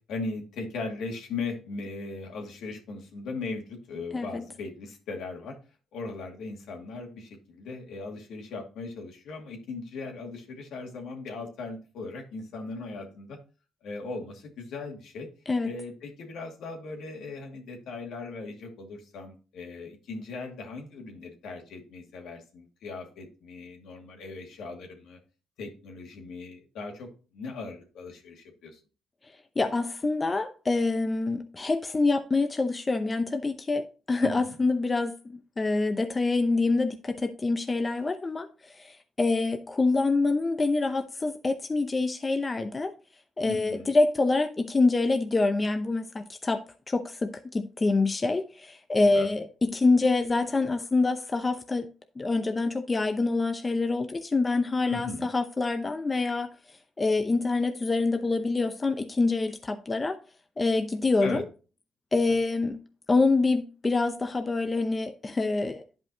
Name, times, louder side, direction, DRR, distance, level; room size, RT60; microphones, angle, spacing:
voice 1, 0.1-5.6 5.9-13.4 13.8-15.3 15.6-25.2 25.6-27.1 27.3-28.8 34.2-34.3 43.4-43.9 49.1-49.3 54.9-55.3 61.2-61.4 62.3-62.4, left 3 dB, 80° left, 2.2 m, -38 dB
voice 2, 4.1-4.4 15.5-15.7 29.6-42.9 43.4-46.6 46.9-51.9 52.2-56.5 57.0-60.2 60.6-61.4 62.1-62.8 63.1-65.8, left 3 dB, 25° left, 0.7 m, -26 dB
10.5 x 5.2 x 2.8 m
cardioid pair, 90°, 0 cm